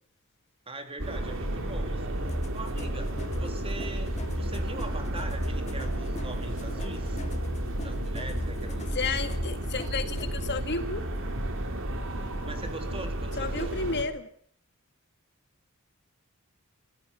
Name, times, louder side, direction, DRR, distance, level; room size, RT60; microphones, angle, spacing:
voice 1, 0.7-7.2 7.8-9.6 12.4-13.8, right 2 dB, 25° right, 6 dB, 3.2 m, -42 dB
sound 1, 1.0-14.0, right 1 dB, 60° right, 3.3 m, -32 dB
sound 2, 2.3-10.5, left 1 dB, 30° left, 1.7 m, -38 dB
voice 2, 8.9-11.0 13.4-14.3, left 4 dB, 50° left, 9 dB, 1.8 m, -32 dB
26.0 x 14.5 x 8.6 m, 0.63 s
head